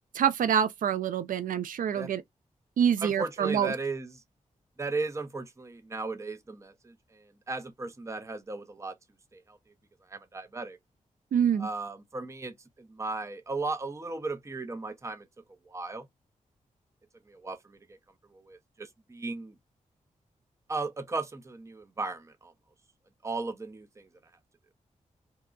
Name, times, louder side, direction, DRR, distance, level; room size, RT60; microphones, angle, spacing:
voice 1, 0.1-2.2 2.8-3.7 11.3-11.7, right 8 dB, 80° right, 0.4 m, -26 dB
voice 2, 3.0-4.1 4.8-8.9 9.3-9.6 10.1-10.8 11.6-15.3 15.7-16.1 17.3-18.0 18.3-19.5 20.7-22.5 23.2-24.1, right 3 dB, 20° right, 0.5 m, -36 dB
2.9 x 2.2 x 2.4 m
cardioid pair, 65°, 14 cm